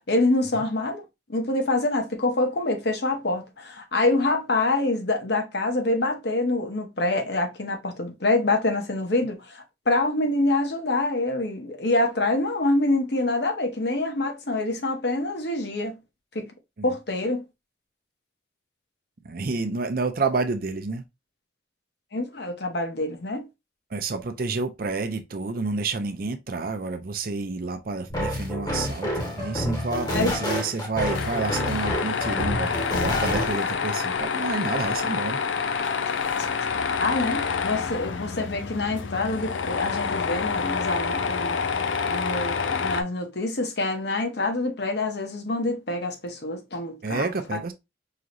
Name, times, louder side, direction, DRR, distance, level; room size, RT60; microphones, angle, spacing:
voice 1, 0.1-1.0 1.3-16.0 16.3-16.5 16.8-17.4 22.1-23.5 30.1-30.3 37.0-41.6 42.1-47.6, left 2 dB, 55° left, 1.0 m, -26 dB
voice 2, 19.2-21.0 23.9-35.4 47.0-47.7, right 3 dB, 50° right, 0.6 m, -29 dB
sound 1, 28.1-33.7, equal, 20° left, 1.1 m, -28 dB
Tools, 31.0-43.0, left 5 dB, 80° left, 0.5 m, -27 dB
4.9 x 3.0 x 2.5 m
head